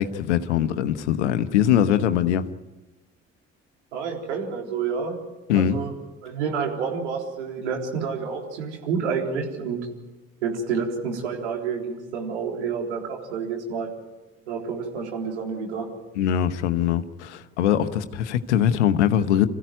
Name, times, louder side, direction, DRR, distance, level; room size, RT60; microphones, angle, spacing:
voice 1, 0.0-2.5 5.5-5.8 16.2-19.5, left 10 dB, 85° left, 1.0 m, -22 dB
voice 2, 3.9-5.2 5.5-5.9 6.2-9.8 10.4-13.9 14.5-15.9, right 6 dB, 85° right, 3.9 m, -29 dB
27.0 x 15.5 x 9.2 m
hypercardioid pair, 50°, 34 cm